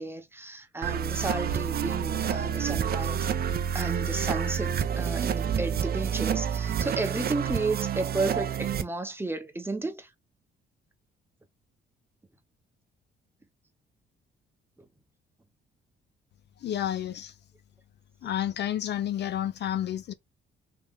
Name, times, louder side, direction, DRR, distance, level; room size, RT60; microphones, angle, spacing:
voice 1, 0.0-3.3 3.7-10.1 14.8-14.9, right 2 dB, 10° right, 0.9 m, -33 dB
sound 1, 0.8-8.8, right 8 dB, 50° right, 0.5 m, -29 dB
voice 2, 16.6-17.3 18.2-20.1, left 11 dB, 60° left, 0.5 m, -30 dB
3.3 x 2.9 x 3.5 m
cardioid pair, 90°, 20 cm